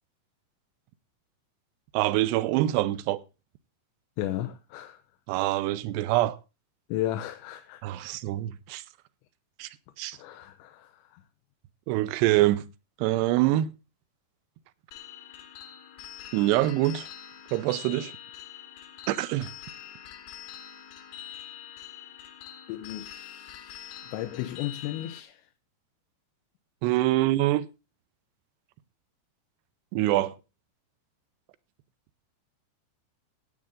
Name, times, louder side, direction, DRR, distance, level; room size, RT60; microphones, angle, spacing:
voice 1, 1.9-3.2 5.3-6.4 7.8-8.8 9.6-9.7 10.0-10.2 11.9-12.6 13.0-13.7 16.3-17.1 17.5-18.2 19.1-19.5 26.8-27.7 29.9-30.4, right 15 dB, 80° right, 2.7 m, -25 dB
voice 2, 4.2-5.0 6.9-8.0 10.1-11.2 22.7-25.5, left 13 dB, 90° left, 3.0 m, -35 dB
sound 1, 14.9-25.2, left 10 dB, 70° left, 3.1 m, -45 dB
16.0 x 8.7 x 3.7 m
omnidirectional pair, 5.1 m